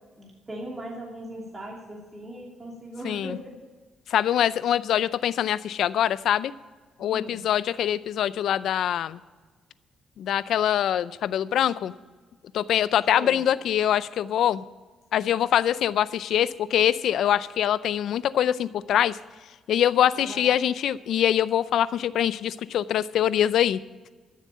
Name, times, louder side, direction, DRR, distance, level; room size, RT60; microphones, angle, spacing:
voice 1, 0.2-3.6 7.0-7.4 13.1-13.4 20.2-20.5, right 1 dB, 25° right, -2 dB, 2.9 m, -39 dB
voice 2, 3.0-3.4 4.1-6.5 7.0-9.2 10.2-11.9 12.5-14.6 15.1-19.2 19.7-23.8, left 10 dB, 75° left, 17 dB, 0.5 m, -24 dB
13.5 x 7.4 x 7.5 m, 1.4 s
cardioid pair, 90°, 0 cm